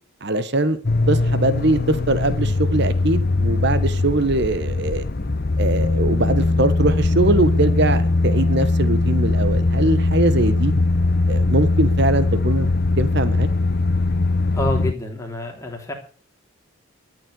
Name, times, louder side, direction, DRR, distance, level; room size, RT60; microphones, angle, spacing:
voice 1, 0.2-0.8 1.1-5.0 5.6-10.7 11.3-13.5, right 2 dB, 50° right, 1.2 m, -22 dB
sound 1, 0.8-14.9, left 2 dB, 45° left, 0.7 m, -20 dB
voice 2, 14.5-15.9, left 1 dB, 15° left, 3.2 m, -27 dB
13.0 x 7.8 x 8.1 m
head